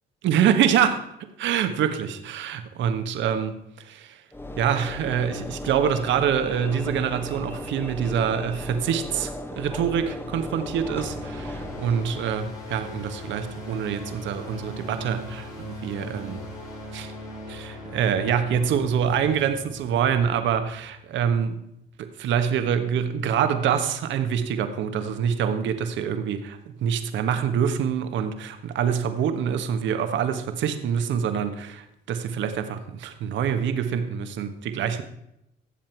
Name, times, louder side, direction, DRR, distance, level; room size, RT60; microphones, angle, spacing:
voice 1, 0.2-4.2 4.6-16.4 16.9-17.1 17.5-21.6 22.0-35.0, right 8 dB, 65° right, 8 dB, 1.4 m, -25 dB
Train / Engine / Alarm, 4.3-12.6, left 1 dB, 10° left, 1.4 m, -36 dB
sound 1, 10.3-21.3, left 1 dB, 80° left, 5.8 m, -40 dB
16.5 x 7.4 x 4.6 m, 0.82 s
supercardioid pair, 70°, 20 cm